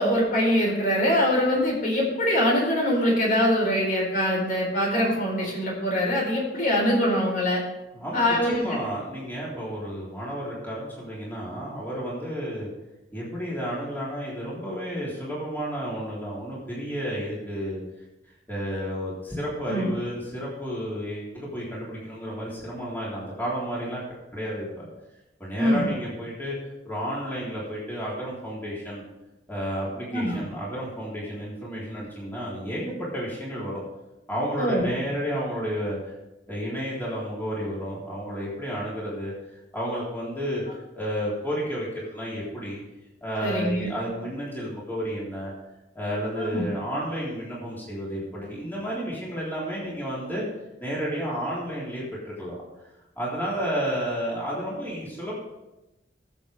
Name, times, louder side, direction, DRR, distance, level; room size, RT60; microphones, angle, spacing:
voice 1, 0.0-7.6 8.1-8.8 19.7-19.9 25.6-25.9 30.1-30.4 34.6-34.9 43.4-43.9 46.4-46.6, equal, 50° left, -2 dB, 4.4 m, -23 dB
voice 2, 7.9-12.7 13.1-17.8 18.5-24.0 24.3-24.9 25.4-26.6 26.9-29.0 29.5-33.8 34.3-36.1 36.5-40.6 40.9-42.8 43.2-45.5 45.9-50.5 50.8-52.7 53.2-55.3, equal, 10° left, -7 dB, 3.6 m, -31 dB
21.0 x 7.3 x 3.5 m, 0.98 s
head